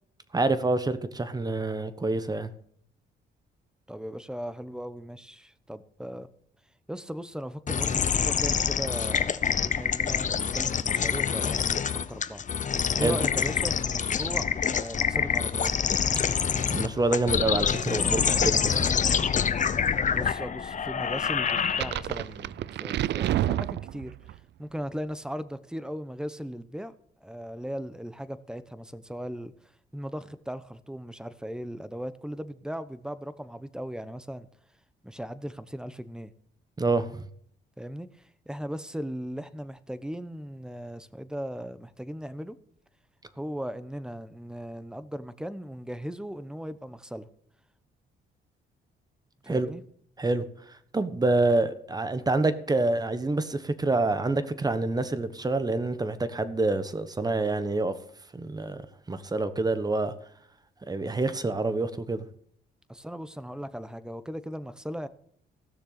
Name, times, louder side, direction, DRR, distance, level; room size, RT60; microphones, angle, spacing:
voice 1, 0.3-2.5 12.9-13.2 16.7-19.0 36.8-37.3 49.5-49.7 50.2-57.9 58.3-58.8 59.1-60.1 60.9-62.2, right 2 dB, 20° right, 1.3 m, -27 dB
voice 2, 3.9-6.3 6.9-12.4 12.9-15.7 20.1-26.9 27.2-34.5 35.0-36.3 37.8-42.6 43.3-47.3 49.4-49.8 62.9-65.1, equal, 5° right, 0.9 m, -38 dB
sound 1, 7.7-22.2, left 7 dB, 40° left, 0.8 m, -26 dB
sound 2, 21.5-24.4, right 13 dB, 60° right, 0.4 m, -29 dB
16.0 x 6.7 x 6.8 m
cardioid pair, 90°, 20 cm